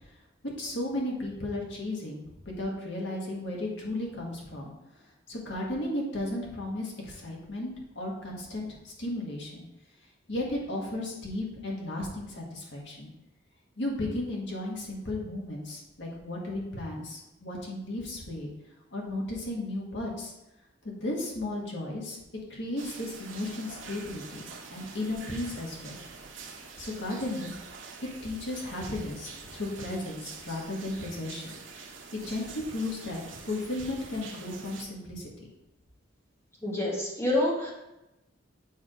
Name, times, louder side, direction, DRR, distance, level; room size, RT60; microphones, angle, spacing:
voice 1, 0.6-4.7 5.3-9.6 10.3-13.1 13.8-18.5 18.9-20.3 20.8-22.2 22.5-26.0 26.8-27.5 28.2-31.6 32.1-35.5, left 1 dB, 65° left, -2 dB, 1.7 m, -34 dB
sound 1, 22.8-34.8, right 4 dB, 80° right, 1.0 m, -45 dB
voice 2, 36.6-37.7, left 1 dB, 15° left, -4 dB, 1.4 m, -27 dB
7.2 x 3.5 x 5.0 m, 0.95 s
head